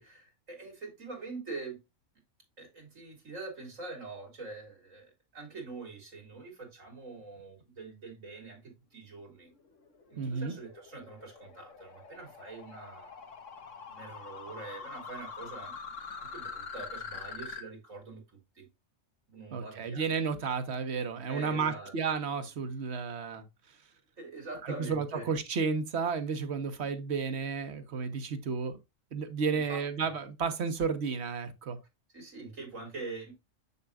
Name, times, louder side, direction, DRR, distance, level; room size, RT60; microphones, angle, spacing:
voice 1, 0.0-1.8 2.6-9.5 10.1-13.3 13.8-15.7 16.2-18.2 18.5-18.7 19.3-20.1 21.3-21.9 24.2-25.3 29.5-30.1 32.1-33.3, right 3 dB, 85° right, 3.2 m, -44 dB
sound 1, 9.6-17.6, left 5 dB, 75° left, 1.6 m, -44 dB
voice 2, 10.2-10.5 19.5-23.4 24.6-28.8 29.1-31.8, right 5 dB, 60° right, 1.3 m, -32 dB
7.5 x 6.8 x 2.4 m
omnidirectional pair, 1.3 m